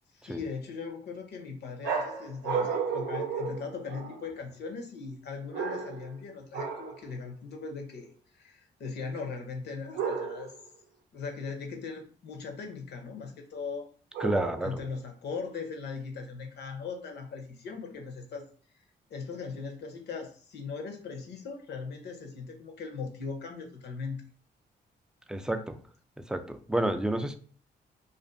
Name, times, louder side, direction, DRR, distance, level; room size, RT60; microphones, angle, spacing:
voice 1, 0.1-8.1 8.3-10.5 11.1-13.9 14.6-18.5 19.1-24.2, left 5 dB, 65° left, 4 dB, 0.7 m, -39 dB
sound 1, 1.8-4.3 5.5-6.2 6.5-7.0 9.9-10.6 14.1-14.9, right 6 dB, 90° right, 0.5 m, -33 dB
voice 2, 14.2-14.8 25.3-25.8 26.3-27.4, right 1 dB, 5° right, 8 dB, 0.3 m, -30 dB
2.5 x 2.4 x 2.5 m, 0.42 s
cardioid pair, 70°, 18 cm